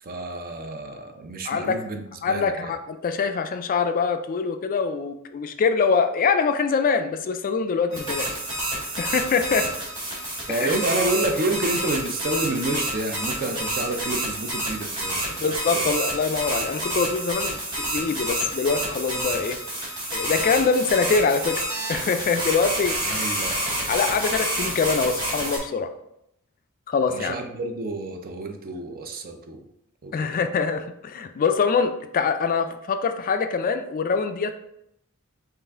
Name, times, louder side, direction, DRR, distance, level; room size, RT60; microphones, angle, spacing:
voice 1, 0.0-2.8 10.5-15.9 23.0-23.6 27.1-29.6 30.0-30.4, right 2 dB, 40° right, 5 dB, 0.5 m, -29 dB
voice 2, 1.5-1.8 2.2-8.3 9.0-9.7 10.5-10.7 15.4-19.6 20.1-21.6 21.9-23.4 23.9-25.9 26.9-27.3 30.1-34.5, left 5 dB, 40° left, 8 dB, 0.3 m, -24 dB
sound 1, 7.9-25.6, right 1 dB, 20° right, 1.5 m, -29 dB
5.4 x 2.5 x 3.5 m, 0.79 s
head